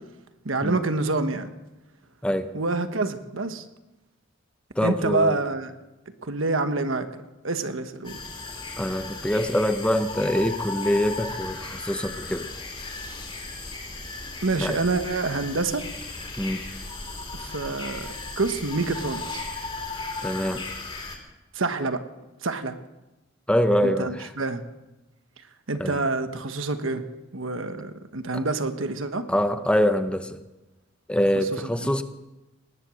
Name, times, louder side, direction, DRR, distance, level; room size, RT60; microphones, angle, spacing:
voice 1, 0.4-1.5 2.5-3.6 4.8-5.7 6.2-7.1 7.4-8.2 14.4-15.8 17.3-19.5 21.5-22.0 22.4-22.8 23.8-24.6 25.7-27.0 27.3-29.2 31.3-31.9, right 3 dB, 90° right, 9 dB, 1.3 m, -27 dB
voice 2, 4.8-5.4 8.8-12.5 14.6-14.7 16.4-16.6 20.2-20.6 23.5-24.3 25.8-26.0 29.3-30.4 31.1-32.0, equal, 5° left, 9 dB, 0.7 m, -24 dB
sound 1, 8.0-21.2, left 3 dB, 25° left, 2.9 m, -36 dB
19.0 x 10.5 x 6.4 m, 1.1 s
head